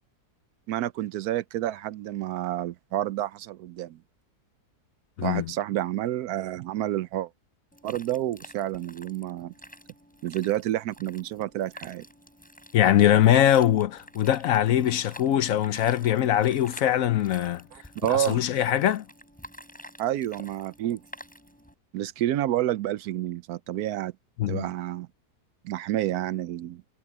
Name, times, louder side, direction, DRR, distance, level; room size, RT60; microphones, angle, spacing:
voice 1, 0.7-4.0 5.2-7.3 7.8-9.5 10.2-12.0 17.7-18.4 20.0-21.0 21.9-24.1 24.5-25.1 25.6-26.8, right 13 dB, 75° right, 1.1 m, -29 dB
sound 1, 7.7-21.7, equal, 5° left, 7.6 m, -49 dB
voice 2, 12.7-17.6 18.1-19.0 24.4-24.7, left 11 dB, 65° left, 1.0 m, -22 dB
omnidirectional pair, 1.7 m